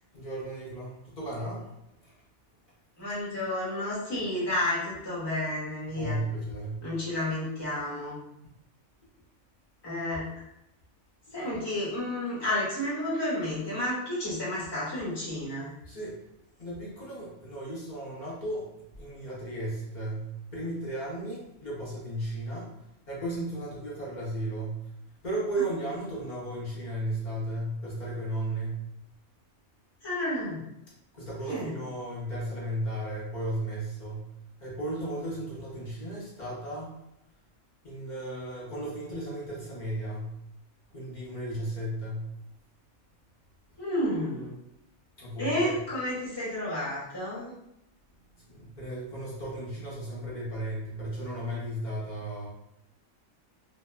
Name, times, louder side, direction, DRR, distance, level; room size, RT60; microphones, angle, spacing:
voice 1, 0.1-1.6 2.0-2.1 6.0-6.8 15.9-16.2 16.6-18.7 19.0-22.7 23.1-24.9 25.2-28.8 31.1-34.3 34.6-36.9 37.8-40.3 40.9-42.3 45.2-45.7 48.5-52.5, right 1 dB, 45° left, -7 dB, 0.6 m, -35 dB
voice 2, 3.0-6.2 6.8-8.2 9.8-10.4 11.3-15.7 30.0-30.6 31.4-31.8 43.8-44.5 45.4-47.6, left 1 dB, 20° left, -7 dB, 1.0 m, -31 dB
2.8 x 2.0 x 2.2 m, 0.83 s
omnidirectional pair, 1.5 m